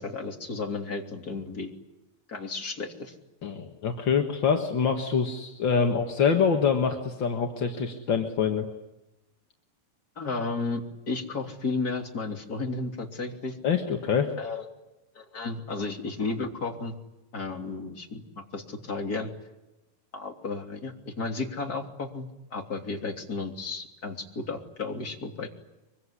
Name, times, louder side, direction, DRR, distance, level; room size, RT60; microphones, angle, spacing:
voice 1, 0.0-1.7 2.3-3.1 10.2-13.6 14.4-14.6 15.1-16.9 17.3-19.3 20.1-25.5, left 3 dB, 25° left, 3 dB, 3.2 m, -33 dB
voice 2, 3.4-8.7 13.6-14.3, left 6 dB, 45° left, 3 dB, 1.6 m, -25 dB
24.0 x 24.0 x 10.0 m, 0.96 s
omnidirectional pair, 4.3 m